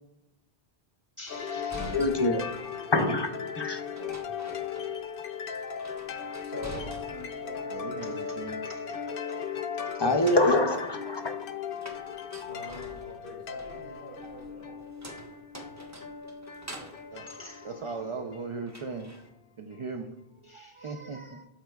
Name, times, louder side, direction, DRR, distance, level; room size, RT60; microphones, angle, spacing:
voice 1, 1.2-1.9 3.9-4.2 7.7-9.4 17.1-19.1 19.6-20.2 20.4-21.5, right 3 dB, 50° right, 4 dB, 0.4 m, -39 dB
sound 1, 1.3-19.1, left 7 dB, 65° left, 0.7 m, -38 dB
sound 2, 1.3-2.9 4.0-5.3 5.5-7.4 7.7-8.6 10.0-18.3 18.7-19.3, right 1 dB, 20° right, 0.8 m, -47 dB
voice 2, 1.8-2.4 2.9-3.8 10.0-11.3, left 2 dB, 35° left, 5 dB, 0.5 m, -25 dB
voice 3, 6.4-8.4 12.5-14.8, equal, 80° right, -8 dB, 2.8 m, -45 dB
12.5 x 4.3 x 2.3 m, 0.92 s
omnidirectional pair, 1.0 m